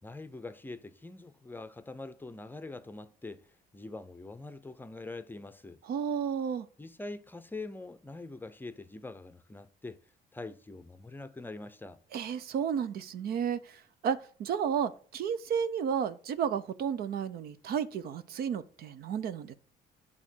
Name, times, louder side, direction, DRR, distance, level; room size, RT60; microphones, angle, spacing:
voice 1, 0.0-3.5 3.7-5.8 6.8-10.0 10.3-12.0, left 2 dB, 10° left, 0.6 m, -44 dB
voice 2, 5.9-6.7 12.1-19.5, right 7 dB, 65° right, 0.7 m, -32 dB
10.5 x 3.6 x 6.2 m
cardioid pair, 110°, 17 cm